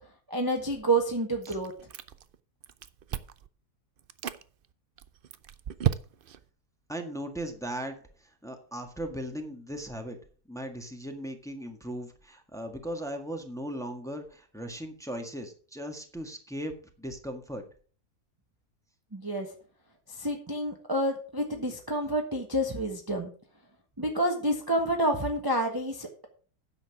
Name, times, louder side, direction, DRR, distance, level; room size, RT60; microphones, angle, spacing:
voice 1, 0.3-1.7 19.1-19.5 20.2-23.3 24.0-26.3, right 1 dB, 15° right, 2 dB, 1.3 m, -28 dB
Chewing mastication, 1.4-2.4 2.6-3.5 4.0-4.4 5.0-6.4, right 10 dB, 60° right, 0.5 m, -33 dB
voice 2, 6.9-10.2 10.5-17.6, equal, ahead, 4 dB, 1.6 m, -38 dB
10.0 x 7.4 x 5.9 m, 0.41 s
omnidirectional pair, 1.7 m